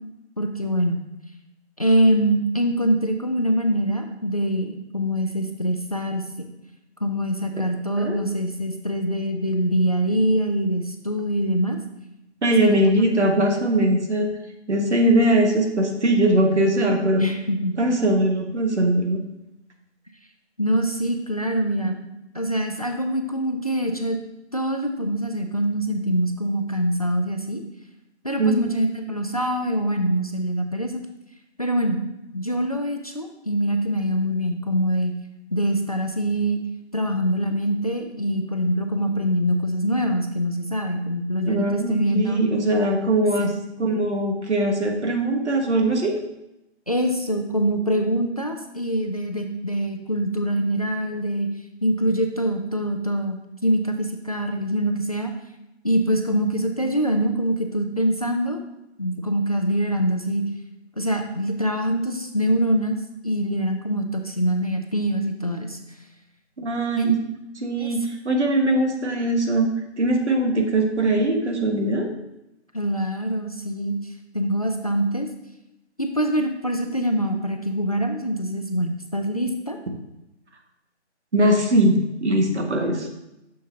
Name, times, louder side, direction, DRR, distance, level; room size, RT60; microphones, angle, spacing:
voice 1, 0.4-1.0 1.8-6.5 7.0-11.8 12.6-13.1 17.2-17.8 20.6-22.0 22.3-24.2 24.5-27.6 28.2-31.0 31.6-32.1 32.3-35.2 35.5-36.6 36.9-42.5 43.4-43.5 46.9-51.5 51.8-55.3 55.8-58.6 59.0-60.4 61.0-63.0 63.2-65.8 67.0-67.1 67.8-67.9 72.7-73.9 74.3-75.3 76.0-79.8, equal, 35° left, 5 dB, 0.4 m, -24 dB
voice 2, 12.4-14.3 14.7-17.2 17.8-19.2 28.4-28.8 41.5-43.5 43.8-46.2 66.6-67.2 67.6-69.7 70.0-72.1 81.3-83.1, right 1 dB, 75° right, 3 dB, 1.5 m, -21 dB
6.6 x 6.5 x 2.8 m, 0.91 s
figure-of-eight pair, 160°, 35 cm